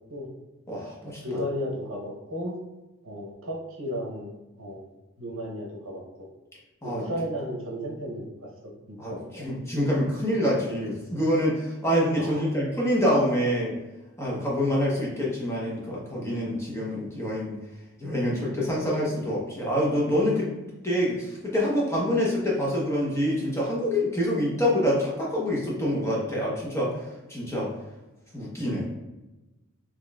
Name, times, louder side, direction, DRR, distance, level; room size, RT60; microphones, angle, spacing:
voice 1, 0.7-1.4 6.8-7.1 9.0-13.7 14.2-17.6 18.0-20.5 20.8-27.0 27.3-27.7 28.3-28.9, equal, 10° left, -5 dB, 0.8 m, -26 dB
voice 2, 1.2-2.6 3.0-4.9 5.2-6.0 6.8-8.3 8.6-9.5 12.2-12.4, equal, 65° right, -1 dB, 0.9 m, -34 dB
4.3 x 3.0 x 2.3 m, 1.1 s
head